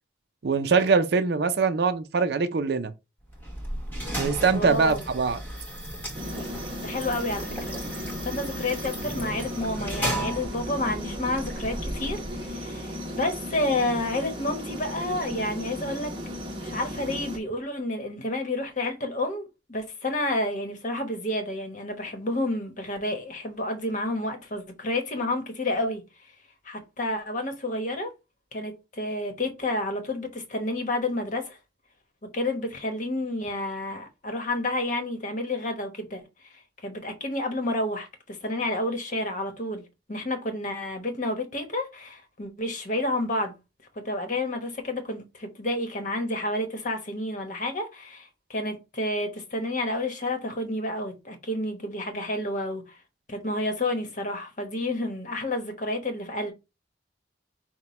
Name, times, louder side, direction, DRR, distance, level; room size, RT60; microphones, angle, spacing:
voice 1, 0.4-2.9 4.2-5.4, right 5 dB, 60° right, 0.4 m, -23 dB
sound 1, 3.3-12.6, right 1 dB, 10° left, 1.3 m, -35 dB
voice 2, 4.5-5.0 6.8-16.1 16.6-19.4 19.7-26.0 26.6-28.1 28.5-31.6 32.3-36.2 36.8-39.8 40.1-43.6 43.9-53.0 53.3-56.5, left 1 dB, 45° left, 1.0 m, -30 dB
sound 2, 6.1-17.4, left 1 dB, 25° right, 0.9 m, -36 dB
5.9 x 2.2 x 4.2 m
head